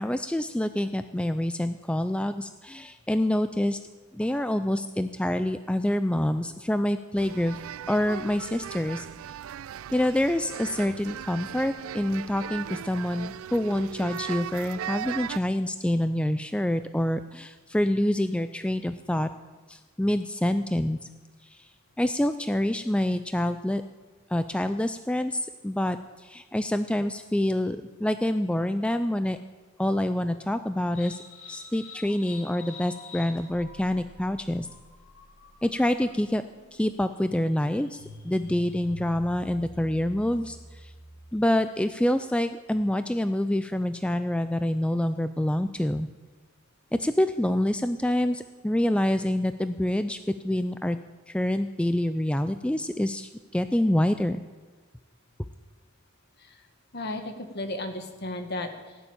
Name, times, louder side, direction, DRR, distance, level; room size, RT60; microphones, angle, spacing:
voice 1, 0.0-3.8 4.1-7.6 7.9-9.1 9.9-19.3 19.7-21.0 21.4-21.7 22.0-23.8 24.3-29.4 29.8-31.2 31.5-34.7 35.6-36.4 36.7-40.9 41.3-46.1 46.9-50.2 50.4-51.0 51.3-54.4, left 1 dB, 5° left, 10 dB, 0.3 m, -26 dB
sound 1, 7.2-15.4, right 10 dB, 80° right, 0.3 m, -38 dB
sound 2, 30.9-41.5, left 2 dB, 70° left, 3.1 m, -47 dB
voice 2, 56.9-59.0, left 2 dB, 50° left, 6 dB, 1.6 m, -34 dB
17.0 x 7.0 x 8.9 m, 1.3 s
head